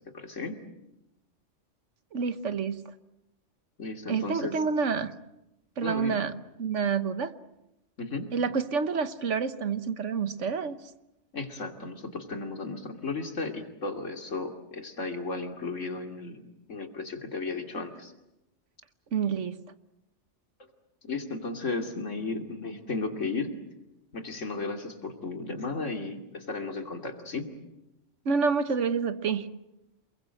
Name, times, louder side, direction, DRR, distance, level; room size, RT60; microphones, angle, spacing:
voice 1, 0.1-0.6 3.8-4.6 5.8-6.2 8.0-8.3 11.3-18.1 21.0-23.5 24.1-27.5, left 3 dB, 75° left, 4 dB, 3.0 m, -34 dB
voice 2, 2.1-2.8 4.1-5.1 5.8-6.3 6.6-7.3 8.3-10.8 19.1-19.6 28.2-29.5, right 5 dB, 75° right, 12 dB, 1.5 m, -28 dB
28.5 x 22.0 x 7.8 m, 0.92 s
omnidirectional pair, 1.3 m